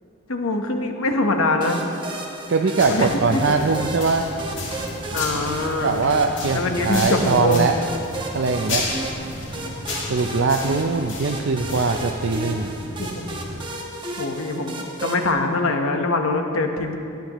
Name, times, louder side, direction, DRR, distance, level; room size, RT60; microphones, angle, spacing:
voice 1, 0.3-1.8 2.9-3.6 5.1-6.0 6.5-7.7 13.0-13.1 14.2-17.0, left 2 dB, 90° left, 4 dB, 1.1 m, -23 dB
sound 1, 1.6-15.3, right 2 dB, 25° right, 1.0 m, -34 dB
voice 2, 2.5-4.3 5.8-7.8 8.3-8.8 10.1-12.7, right 4 dB, 65° right, 4 dB, 0.5 m, -21 dB
sound 2, 2.8-13.6, left 2 dB, 60° left, 2.2 m, -32 dB
17.5 x 10.5 x 3.0 m, 2.7 s
head